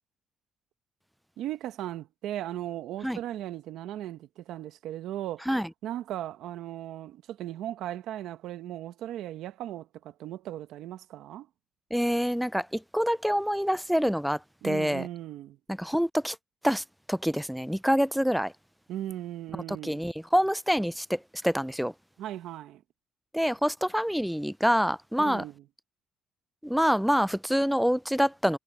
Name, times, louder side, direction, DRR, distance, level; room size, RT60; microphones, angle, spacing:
voice 1, 1.4-5.5 5.8-11.5 14.6-15.6 18.9-20.0 22.2-22.8 25.2-25.7, right 12 dB, 85° right, 1.3 m, -37 dB
voice 2, 11.9-12.7 12.9-14.4 14.6-15.1 15.8-16.4 16.6-16.8 17.1-18.5 19.8-21.2 21.4-21.9 23.3-25.4 26.6-28.6, equal, ahead, 0.4 m, -26 dB
cardioid pair, 90°, 0 cm